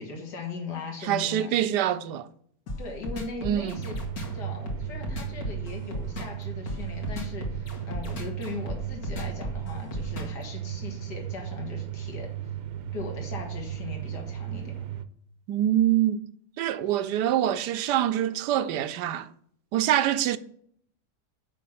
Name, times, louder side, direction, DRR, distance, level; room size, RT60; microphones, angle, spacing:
voice 1, 0.0-1.5 2.8-3.9 4.3-12.3 12.9-14.7 17.0-17.2, left 4 dB, 80° left, 2.4 m, -39 dB
voice 2, 1.0-2.3 3.4-3.8 15.5-16.2 16.6-19.3 19.7-20.4, right 11 dB, 85° right, 1.2 m, -25 dB
sound 1, 2.7-10.4, left 2 dB, 60° left, 2.3 m, -35 dB
sound 2, 3.8-15.0, right 11 dB, 65° right, 1.1 m, -36 dB
7.4 x 5.6 x 7.0 m
omnidirectional pair, 1.8 m